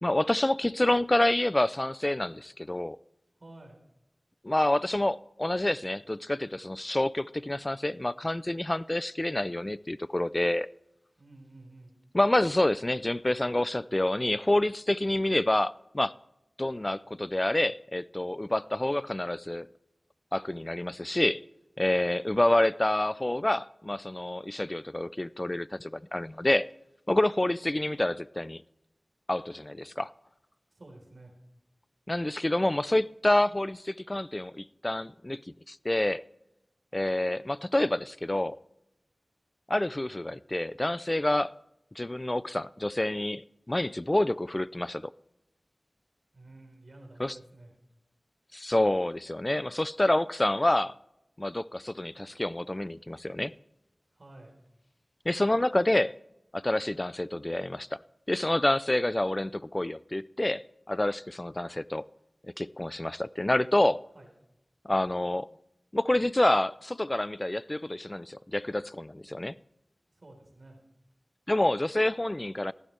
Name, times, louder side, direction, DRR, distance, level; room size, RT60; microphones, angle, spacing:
voice 1, 0.0-3.0 4.4-10.7 12.1-16.1 16.6-19.7 20.3-21.4 21.8-26.7 27.1-28.6 29.3-30.1 32.1-35.4 35.7-36.2 36.9-38.6 39.7-41.5 42.0-45.1 47.2-47.4 48.5-50.9 51.4-53.5 55.3-56.1 56.5-58.0 58.3-62.0 62.4-64.0 64.8-65.5 65.9-69.6 71.5-72.7, left 1 dB, 30° left, 0.4 m, -28 dB
voice 2, 3.4-3.8 11.2-12.0 30.7-31.3 46.3-47.7 54.1-54.5 64.1-64.3 70.1-70.8, right 2 dB, 65° right, 3.7 m, -51 dB
14.5 x 12.0 x 3.3 m
wide cardioid pair, 50°, 0 cm